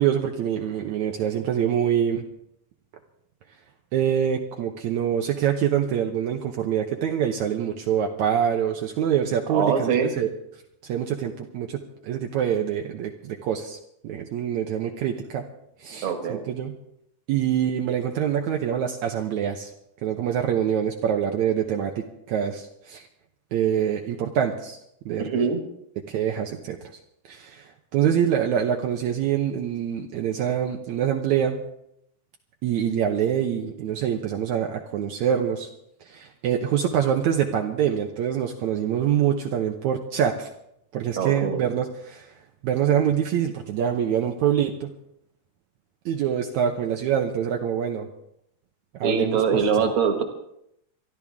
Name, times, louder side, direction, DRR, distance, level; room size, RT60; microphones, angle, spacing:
voice 1, 0.0-2.2 3.9-10.3 10.8-13.8 14.0-15.5 15.8-16.7 17.3-19.7 20.0-23.1 23.5-24.8 25.1-25.2 26.1-26.9 27.3-31.6 32.6-35.7 36.1-40.5 40.9-42.3 42.6-44.9 46.1-48.1 49.0-49.9, right 9 dB, 70° right, 2 dB, 2.2 m, -25 dB
voice 2, 9.5-10.1 16.0-16.4 25.2-25.6 41.2-41.6 49.0-50.2, right 6 dB, 45° right, 5 dB, 2.3 m, -23 dB
26.5 x 12.0 x 3.6 m, 0.77 s
omnidirectional pair, 3.6 m